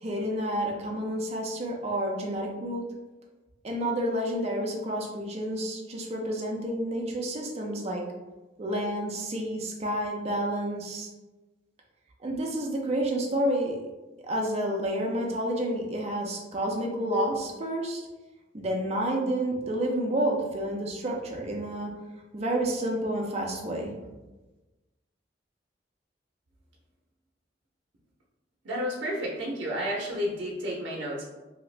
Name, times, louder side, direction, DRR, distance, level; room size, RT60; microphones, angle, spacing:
voice 1, 0.0-2.8 3.6-8.0 8.6-11.1 12.2-13.8 14.2-18.1 18.5-21.9 22.3-23.9, right 1 dB, 35° right, 0 dB, 0.5 m, -29 dB
voice 2, 28.6-31.3, equal, 85° right, -4 dB, 0.6 m, -31 dB
2.8 x 2.4 x 3.2 m, 1.1 s
head